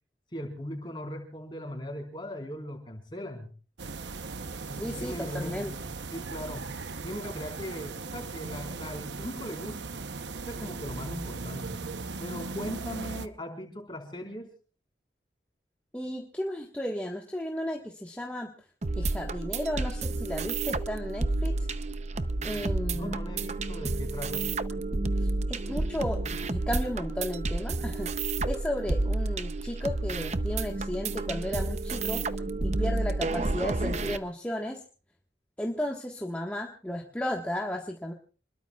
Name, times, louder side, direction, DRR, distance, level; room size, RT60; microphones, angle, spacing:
voice 1, 0.3-3.5 4.7-6.7 7.0-10.0 10.5-11.8 12.2-14.5 22.9-24.5, equal, 25° left, 3 dB, 4.3 m, -39 dB
sound 1, 3.8-13.3, right 3 dB, 80° right, 0.9 m, -38 dB
voice 2, 4.7-5.7 15.9-18.5 18.9-21.6 22.4-23.2 25.2-32.2 32.6-34.8 35.6-38.1, left 1 dB, 10° left, 0 dB, 1.5 m, -34 dB
sound 2, 18.8-34.2, right 2 dB, 40° right, 0.7 m, -30 dB
28.0 x 21.5 x 2.4 m, 0.39 s
head